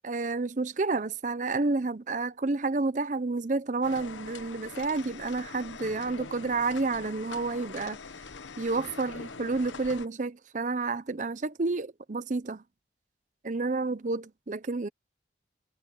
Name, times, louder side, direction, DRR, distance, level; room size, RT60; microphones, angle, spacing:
voice 1, 0.0-8.0 8.6-12.6 13.4-14.9, right 3 dB, 40° right, 0.6 m, -30 dB
sound 1, 3.8-10.1, left 4 dB, 90° left, 1.1 m, -43 dB
head